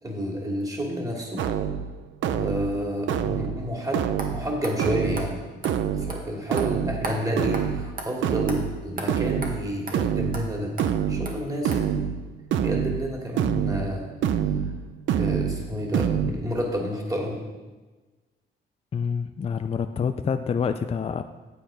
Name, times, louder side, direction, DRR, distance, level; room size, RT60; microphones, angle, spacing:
voice 1, 0.0-1.5 2.3-5.4 6.0-10.7 11.1-11.9 12.6-14.1 14.6-14.7 15.1-17.4, equal, 15° right, -1 dB, 2.5 m, -30 dB
sound 1, 1.4-16.3, right 9 dB, 75° right, 0.6 m, -27 dB
sound 2, 4.2-4.3 4.6-4.7 5.2-5.3 5.6-5.7 6.1-6.2 6.6-6.7 7.0-7.2 7.5-7.6 8.0-8.1 8.5-8.6 9.0-9.1 9.4-9.5 9.9-10.0 10.3-10.4 10.8-10.9 11.3-11.4 11.7-11.8, right 3 dB, 45° right, 1.7 m, -34 dB
voice 2, 18.9-21.2, left 6 dB, 30° left, 8 dB, 0.5 m, -27 dB
8.7 x 8.0 x 5.0 m, 1.2 s
cardioid pair, 90°, 20 cm